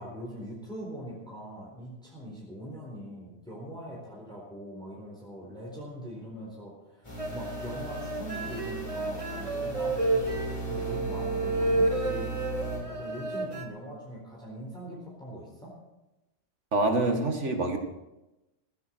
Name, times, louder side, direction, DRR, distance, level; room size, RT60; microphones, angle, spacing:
voice 1, 0.0-10.3 10.7-12.4 12.9-15.7, equal, 5° left, -4 dB, 4.1 m, -42 dB
sound 1, 7.0-12.8, right 1 dB, 25° left, 8.0 m, -37 dB
sound 2, 7.2-13.7, right 2 dB, 30° right, 1.5 m, -31 dB
voice 2, 16.7-17.8, right 2 dB, 80° right, 4 dB, 2.4 m, -26 dB
16.0 x 15.5 x 4.6 m, 0.97 s
omnidirectional pair, 1.2 m